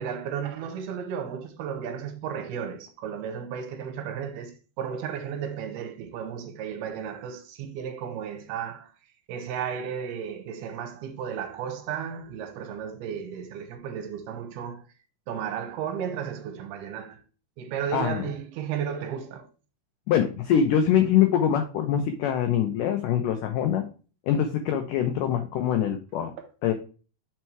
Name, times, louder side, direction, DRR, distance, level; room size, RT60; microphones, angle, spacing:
voice 1, 0.0-8.9 9.3-14.8 15.3-17.2 17.6-19.5, right 8 dB, 80° right, 2.8 m, -34 dB
voice 2, 17.9-18.3 20.1-23.8 24.3-26.3 26.6-26.7, left 9 dB, 90° left, 1.8 m, -24 dB
5.8 x 4.4 x 4.4 m
omnidirectional pair, 4.5 m